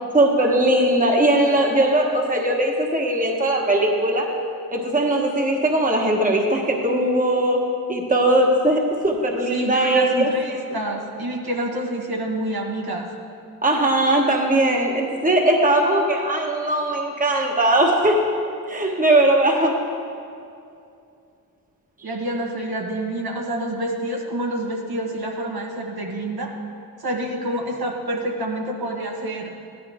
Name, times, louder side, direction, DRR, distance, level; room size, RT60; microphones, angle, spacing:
voice 1, 0.1-4.3 4.7-10.6 13.6-18.3 18.7-19.8, right 1 dB, 20° right, 1 dB, 1.2 m, -19 dB
voice 2, 9.5-13.1 22.0-26.5 27.0-29.5, right 1 dB, 70° right, 0 dB, 1.6 m, -27 dB
15.0 x 11.0 x 3.5 m, 2.5 s
wide cardioid pair, 100°, 38 cm